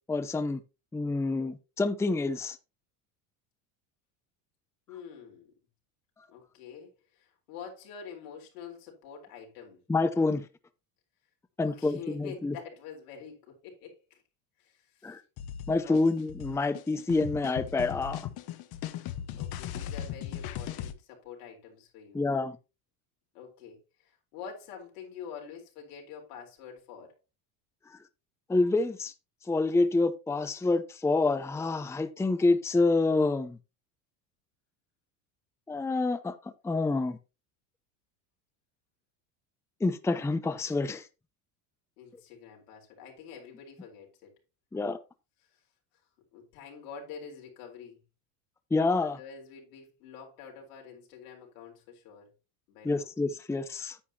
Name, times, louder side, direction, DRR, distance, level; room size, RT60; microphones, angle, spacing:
voice 1, 0.1-0.6 0.9-2.6 9.9-10.5 11.6-12.6 15.0-15.2 15.7-18.2 22.1-22.6 28.5-29.1 29.5-33.6 35.7-36.3 36.6-37.2 39.8-41.1 44.7-45.0 48.7-49.2 52.8-54.0, left 3 dB, 5° left, 0.6 m, -27 dB
voice 2, 4.9-5.5 6.3-9.8 11.6-14.2 14.6-15.2 15.8-16.1 18.9-22.2 23.3-27.1 42.0-44.4 46.3-48.0 49.0-52.3 52.7-53.1, left 6 dB, 85° left, 4.2 m, -47 dB
sound 1, 15.4-20.9, left 10 dB, 55° left, 1.2 m, -38 dB
9.8 x 8.5 x 2.9 m
supercardioid pair, 105°, 44 cm